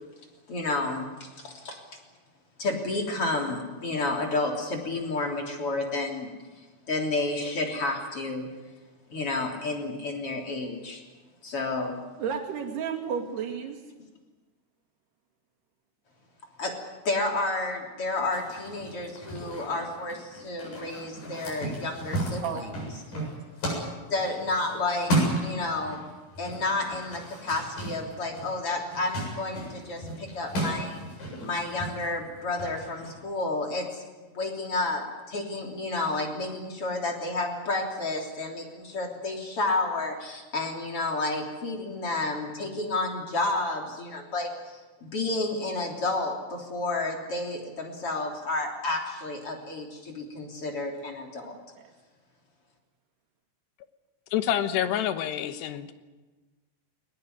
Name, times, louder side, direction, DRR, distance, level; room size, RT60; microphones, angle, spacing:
voice 1, 0.5-1.8 2.6-6.3 6.9-8.5 9.1-11.0 11.4-11.9 14.0-14.1 16.6-16.7 17.0-22.7 24.1-26.0 26.4-31.0 31.4-34.0 34.3-51.5, left 2 dB, 35° left, 1 dB, 3.9 m, -31 dB
voice 2, 12.2-13.8 22.4-23.3 51.4-51.9, right 7 dB, 75° right, 1 dB, 4.6 m, -34 dB
sound 1, 18.3-26.0 26.3-33.1, right 1 dB, 55° left, 9.2 m, -34 dB
voice 3, 54.3-55.9, left 10 dB, 90° left, 10 dB, 3.3 m, -27 dB
21.5 x 20.5 x 9.6 m, 1.3 s
omnidirectional pair, 4.7 m